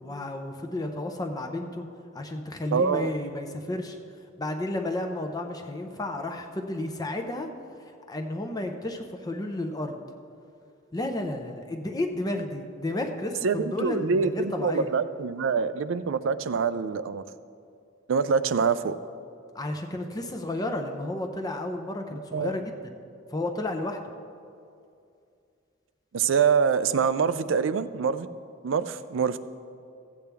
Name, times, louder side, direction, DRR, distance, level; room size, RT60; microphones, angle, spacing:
voice 1, 0.0-1.9 2.1-4.0 4.4-7.5 8.1-10.0 10.9-14.9 19.5-22.9 23.3-24.0, left 1 dB, 20° left, 4 dB, 0.6 m, -32 dB
voice 2, 2.7-3.1 13.4-17.2 18.1-18.9 22.1-22.5 26.1-28.3 28.6-29.4, right 6 dB, 75° right, 14 dB, 0.4 m, -25 dB
15.0 x 8.4 x 3.4 m, 2.4 s
head